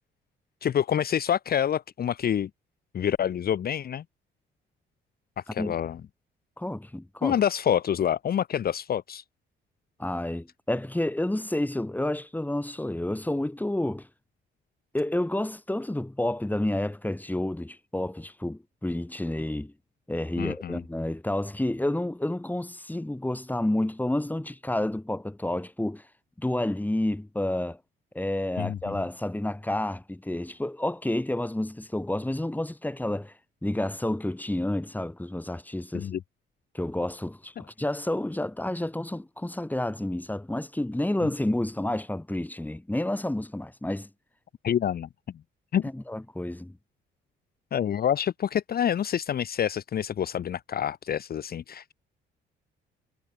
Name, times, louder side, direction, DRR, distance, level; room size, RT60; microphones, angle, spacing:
voice 1, 0.6-2.5 2.9-4.0 5.5-6.0 7.2-9.2 20.4-20.8 28.6-29.0 35.9-36.2 44.6-45.1 45.7-45.8 47.7-51.9, left 9 dB, 50° left, 0.9 m, -27 dB
voice 2, 6.6-7.4 10.0-14.1 14.9-19.7 20.1-26.0 26.4-27.8 28.1-33.3 33.6-36.1 36.7-44.1 45.9-46.8, left 1 dB, 10° left, 7.1 m, -30 dB
cardioid pair, 90°, 20 cm